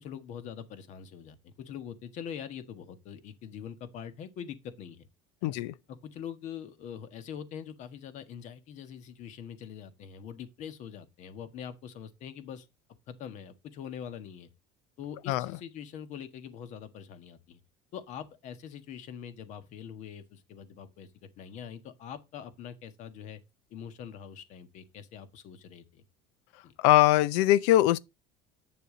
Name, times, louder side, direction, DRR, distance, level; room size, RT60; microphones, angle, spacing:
voice 1, 0.0-5.1 5.4-5.6 5.9-12.7 13.1-14.5 15.0-17.6 17.9-21.1 21.4-23.4 23.7-26.0 26.6-26.7, left 8 dB, 60° left, 1.5 m, -43 dB
voice 2, 5.4-5.7 15.3-15.5 26.8-28.0, left 15 dB, 80° left, 0.5 m, -22 dB
8.6 x 6.7 x 3.9 m
supercardioid pair, 100°, 14 cm